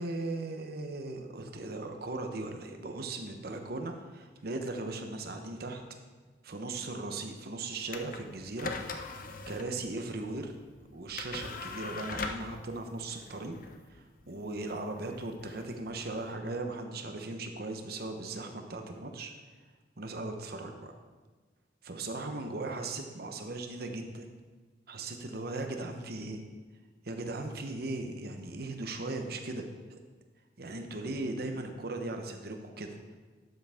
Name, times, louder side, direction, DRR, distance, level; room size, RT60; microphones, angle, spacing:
voice 1, 0.0-5.8 6.4-8.7 9.0-10.6 10.9-13.6 13.9-19.3 20.0-20.9 21.8-24.3 24.9-26.4 27.0-30.0 30.6-33.2, right 2 dB, 60° right, 5 dB, 1.0 m, -38 dB
sound 1, 7.9-16.3, left 4 dB, 50° left, 0.7 m, -42 dB
12.0 x 7.6 x 3.6 m, 1.4 s
head